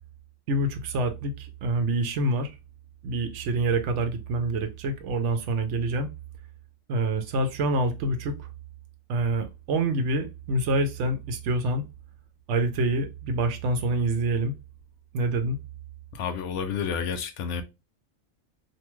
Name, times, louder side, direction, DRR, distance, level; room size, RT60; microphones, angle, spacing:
voice 1, 0.5-2.6 3.0-6.1 6.9-8.4 9.1-11.8 12.5-14.5 15.1-15.6, right 2 dB, 80° right, 1.0 m, -26 dB
voice 2, 16.1-17.6, left 6 dB, 85° left, 0.9 m, -30 dB
2.7 x 2.2 x 3.0 m
omnidirectional pair, 1.2 m